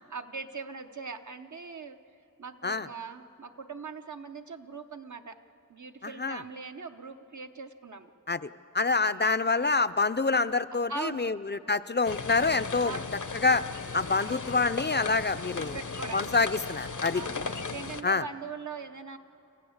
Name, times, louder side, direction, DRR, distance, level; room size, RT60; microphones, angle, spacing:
voice 1, 0.1-2.0 2.4-5.4 5.7-8.1 9.1-9.3 10.9-11.3 12.8-13.2 14.2-14.7 15.6-16.5 17.1-19.2, right 5 dB, 70° right, 6 dB, 0.8 m, -41 dB
voice 2, 6.0-6.4 8.3-8.5 8.7-13.0 13.4-13.6 13.9-15.8 16.1-17.2 18.0-18.2, left 4 dB, 35° left, 13 dB, 0.4 m, -26 dB
sound 1, 12.0-18.0, left 4 dB, 75° left, 0.8 m, -37 dB
27.0 x 15.0 x 7.2 m, 2.7 s
wide cardioid pair, 50°, 31 cm